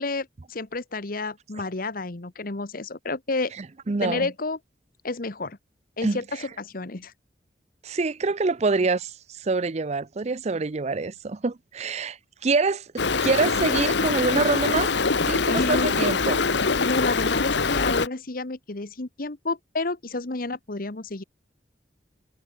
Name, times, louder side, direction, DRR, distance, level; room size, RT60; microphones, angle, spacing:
voice 1, 0.0-3.5 4.0-4.6 5.0-5.6 6.0-7.1 15.5-15.9 16.8-21.2, left 3 dB, 50° left, 1.2 m, -30 dB
voice 2, 3.9-4.3 6.0-6.2 7.8-9.1 9.4-12.2 12.4-14.9 15.3-16.4, right 3 dB, 40° right, 0.5 m, -25 dB
Stream, 13.0-18.1, left 4 dB, 75° left, 1.2 m, -23 dB
head